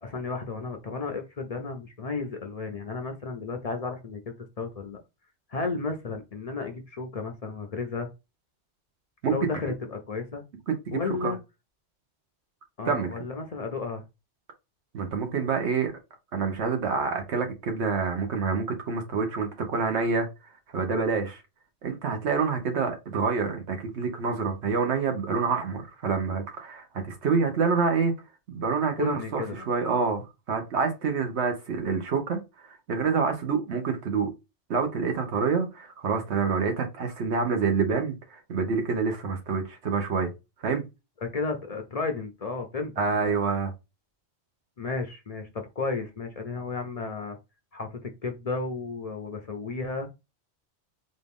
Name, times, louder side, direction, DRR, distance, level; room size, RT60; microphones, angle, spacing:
voice 1, 0.0-5.0 5.5-8.1 9.3-10.4 10.9-11.4 12.8-14.0 29.0-29.7 41.2-43.4 44.8-47.4 47.7-50.1, left 4 dB, 45° left, 0.5 m, -33 dB
voice 2, 10.7-11.3 12.8-13.1 14.9-15.9 16.3-20.3 20.7-21.4 21.8-28.1 28.5-34.3 34.7-40.3 40.6-40.8 43.0-43.7, right 5 dB, 70° right, 1.2 m, -27 dB
4.2 x 2.4 x 3.5 m
omnidirectional pair, 1.2 m